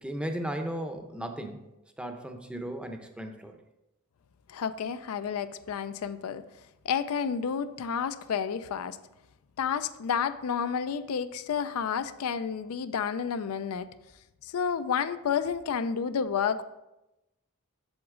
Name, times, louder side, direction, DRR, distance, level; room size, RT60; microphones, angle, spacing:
voice 1, 0.0-1.6 2.0-3.6, right 1 dB, 5° right, 5 dB, 0.6 m, -36 dB
voice 2, 4.5-6.4 6.8-9.0 9.6-13.9 14.4-16.6, left 7 dB, 75° left, 12 dB, 0.4 m, -30 dB
8.0 x 7.0 x 3.7 m, 0.96 s
head